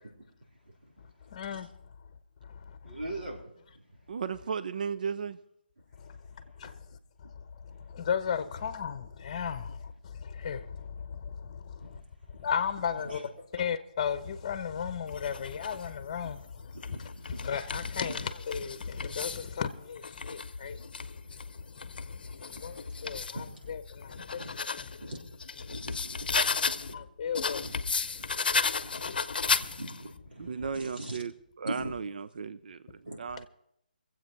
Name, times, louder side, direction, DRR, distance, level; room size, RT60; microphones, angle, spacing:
voice 1, 1.3-1.7 2.4-3.0 6.0-6.2 6.6-6.8 7.2-12.0 12.3-25.1 25.6-25.7 26.9-27.8 28.0-29.2 29.4-29.8, left 7 dB, 35° left, 0.9 m, -36 dB
voice 2, 2.8-3.4 16.9-17.5 22.7-22.8 23.0-23.5 24.4-24.5 25.0-25.2 25.7-26.4 26.9-27.0 27.6-27.7 28.8-31.2 31.6-31.9 33.1-33.2, right 1 dB, 85° right, 3.7 m, -41 dB
voice 3, 4.1-5.4 26.4-26.5 30.4-33.5, right 6 dB, 60° right, 0.5 m, -35 dB
sound 1, 15.1-15.9 16.6-19.5 20.0-23.4 23.9-26.9 27.3-30.1, left 5 dB, 70° left, 0.7 m, -34 dB
23.0 x 7.9 x 4.6 m
hypercardioid pair, 160°, 5 cm